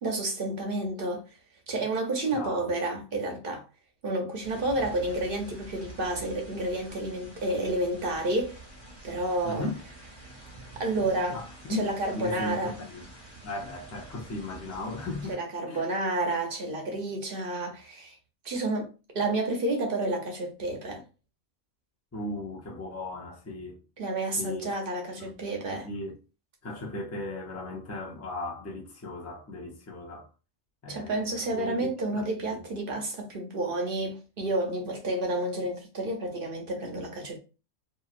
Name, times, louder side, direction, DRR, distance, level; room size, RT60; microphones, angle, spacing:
voice 1, 0.0-1.3 1.7-3.6 4.0-8.6 9.0-9.7 10.8-11.4 11.7-12.8 15.3-18.2 18.4-18.9 19.1-21.0 24.0-25.9 30.9-37.4, right 2 dB, 50° right, 0.8 m, -30 dB
voice 2, 2.3-2.7 9.4-9.8 11.3-11.8 12.1-13.0 13.4-15.4 15.7-15.9 22.1-23.8 24.4-24.7 25.2-25.3 25.8-26.2 26.6-30.3 30.8-32.6, left 2 dB, 20° left, 0.4 m, -37 dB
sound 1, 4.4-15.3, right 2 dB, 20° right, 0.9 m, -47 dB
2.8 x 2.7 x 2.4 m
omnidirectional pair, 1.4 m